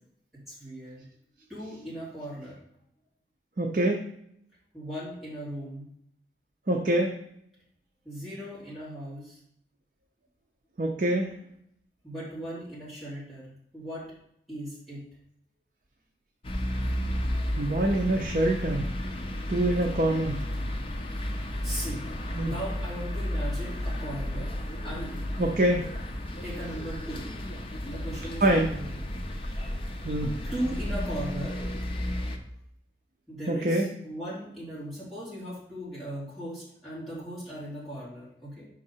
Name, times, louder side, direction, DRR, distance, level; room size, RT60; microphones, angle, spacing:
voice 1, 0.3-1.0 1.5-2.6 4.7-5.9 8.0-9.4 12.0-14.1 14.5-15.0 21.6-22.0 22.4-24.5 24.8-25.2 26.4-27.2 27.8-29.2 29.4-29.9 30.4-31.6 33.3-38.7, right 1 dB, ahead, -10 dB, 2.6 m, -38 dB
voice 2, 3.6-4.0 6.7-7.1 10.8-11.3 17.6-18.9 19.5-20.4 22.4-22.5 25.4-25.9 28.4-28.7 30.0-30.4 33.5-33.9, right 1 dB, 45° right, 2 dB, 0.6 m, -25 dB
sound 1, 16.4-32.4, left 1 dB, 30° left, 0.6 m, -33 dB
5.3 x 3.8 x 5.6 m, 0.72 s
head